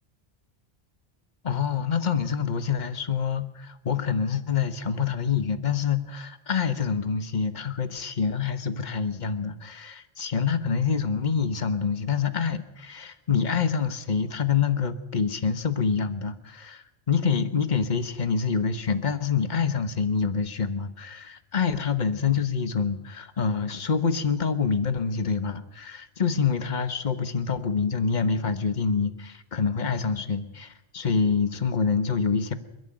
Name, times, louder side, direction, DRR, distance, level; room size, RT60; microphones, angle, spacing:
voice 1, 1.4-32.5, left 6 dB, 45° left, 11 dB, 1.3 m, -26 dB
28.5 x 11.0 x 9.0 m, 0.90 s
omnidirectional pair, 1.1 m